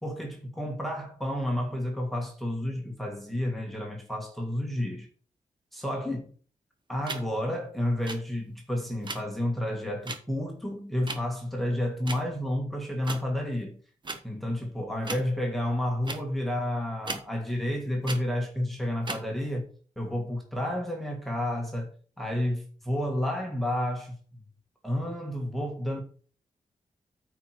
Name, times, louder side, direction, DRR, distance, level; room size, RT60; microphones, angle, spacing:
voice 1, 0.0-5.1 5.7-6.3 6.9-13.8 14.2-19.7 20.0-21.9 22.2-24.1 24.8-26.0, left 1 dB, ahead, 1.8 m, -30 dB
sound 1, 7.0-7.2 8.0-8.2 9.0-9.2 10.1-10.2 11.0-11.2 12.1-12.2 13.0-13.2 14.0-14.2 15.0-15.2 16.0-16.2 17.0-17.2 18.0-18.2 19.0-19.2, right 3 dB, 35° right, 1.4 m, -35 dB
9.3 x 4.7 x 5.9 m
wide cardioid pair, 115°, 13 cm